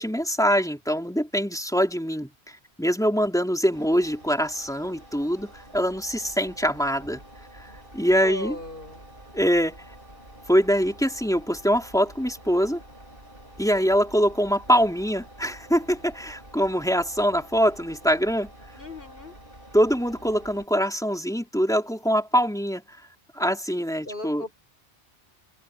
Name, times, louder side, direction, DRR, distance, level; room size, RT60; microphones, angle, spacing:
voice 1, 0.0-7.2 7.5-8.6 9.3-9.8 10.5-12.8 13.6-18.5 19.7-22.8 23.3-24.4, equal, 5° left, 3.4 m, -24 dB
Engine, 3.7-20.7, right 1 dB, 55° right, 5.7 m, -48 dB
voice 2, 8.2-9.1 18.8-19.3 24.0-24.5, left 1 dB, 55° left, 6.2 m, -37 dB
omnidirectional pair, 1.1 m